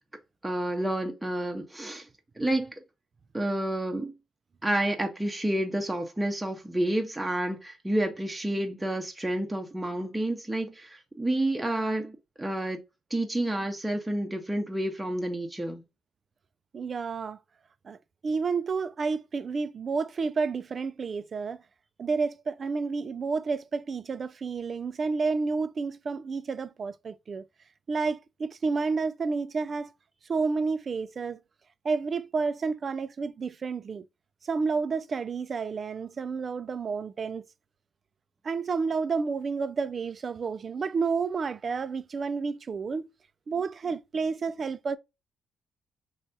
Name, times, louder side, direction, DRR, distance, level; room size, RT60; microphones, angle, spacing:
voice 1, 0.4-2.1 2.4-2.7 3.3-4.1 4.6-12.8 13.1-15.8, right 1 dB, 10° right, 0.7 m, -29 dB
voice 2, 16.7-17.4 17.8-18.0 18.2-21.6 22.0-27.5 27.9-29.9 30.3-31.4 31.8-34.1 34.4-37.4 38.4-43.1 43.5-45.0, right 4 dB, 40° right, 0.3 m, -30 dB
3.1 x 2.3 x 2.6 m
cardioid pair, 90°, 0 cm